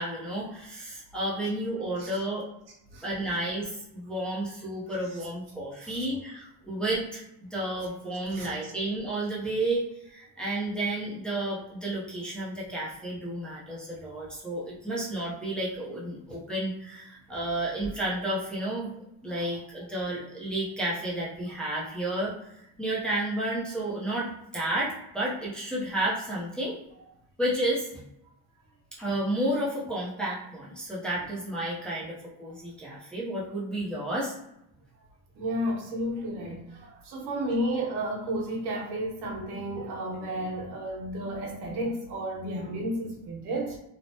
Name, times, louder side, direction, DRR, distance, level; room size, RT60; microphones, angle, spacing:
voice 1, 0.0-2.5 3.0-18.9 19.2-26.8 27.4-28.0 29.0-34.4, right 1 dB, ahead, -7 dB, 0.5 m, -31 dB
voice 2, 8.3-8.7 35.3-43.8, right 1 dB, 85° right, -1 dB, 1.0 m, -32 dB
3.2 x 2.0 x 2.7 m, 0.83 s
cardioid pair, 170°, 38 cm